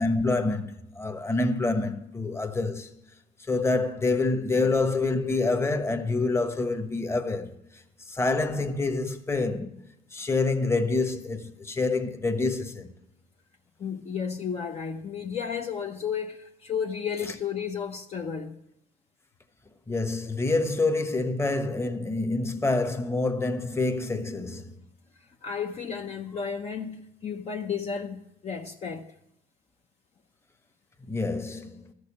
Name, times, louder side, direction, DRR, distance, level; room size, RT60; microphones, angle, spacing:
voice 1, 0.0-2.9 3.5-9.8 10.1-12.9 19.9-24.8 31.1-31.9, left 3 dB, 15° left, 1.2 m, -27 dB
voice 2, 13.8-18.6 25.4-29.1, left 7 dB, 40° left, 0.8 m, -33 dB
14.0 x 6.6 x 8.5 m
cardioid pair, 110°, 17 cm